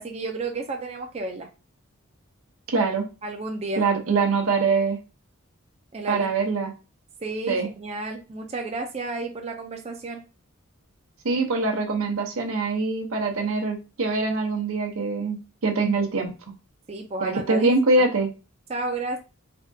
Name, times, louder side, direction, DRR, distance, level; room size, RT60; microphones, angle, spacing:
voice 1, 0.0-1.5 3.2-3.9 5.9-6.3 7.2-10.2 16.9-18.0 18.7-19.2, right 2 dB, 30° right, 3 dB, 0.4 m, -32 dB
voice 2, 2.7-3.0 3.8-5.0 6.1-6.7 7.5-7.7 11.2-16.3 17.2-18.3, right 3 dB, 85° right, 3 dB, 0.8 m, -23 dB
3.5 x 2.3 x 2.6 m, 0.31 s
head